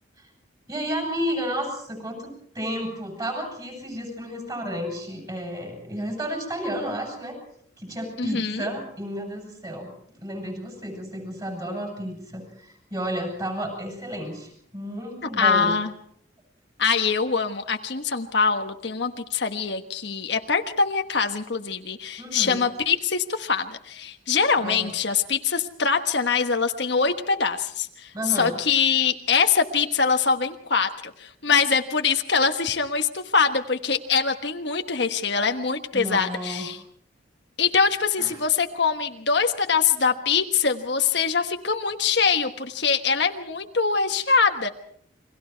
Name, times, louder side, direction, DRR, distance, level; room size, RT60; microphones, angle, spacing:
voice 1, 0.7-7.4 7.8-15.8 22.2-22.6 24.6-24.9 28.1-28.5 35.9-36.7 38.2-38.4, equal, 20° right, 3 dB, 8.0 m, -32 dB
voice 2, 8.2-8.7 15.4-15.9 16.8-36.8 37.6-44.7, left 5 dB, 60° left, 6 dB, 1.3 m, -23 dB
30.0 x 23.0 x 4.6 m, 0.64 s
head